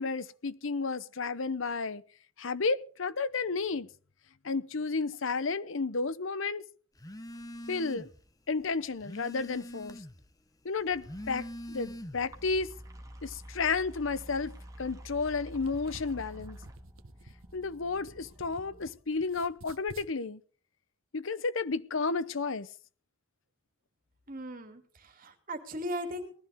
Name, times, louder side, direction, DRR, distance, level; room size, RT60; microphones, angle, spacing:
voice 1, 0.0-2.0 2.4-3.9 4.4-6.6 7.7-8.1 8.5-10.0 10.6-12.7 13.2-14.5 14.8-16.6 17.5-20.4 21.1-22.7, left 4 dB, 70° left, 0.8 m, -32 dB
Telephone, 7.0-8.2 8.6-10.3 10.9-12.4, equal, 15° left, 1.0 m, -43 dB
sound 1, 10.8-19.4, equal, 15° right, 2.3 m, -49 dB
sound 2, 15.5-18.9 19.2-20.1, right 2 dB, 80° right, 1.2 m, -52 dB
voice 2, 24.3-26.3, equal, 40° right, 2.8 m, -38 dB
19.5 x 13.5 x 3.6 m
head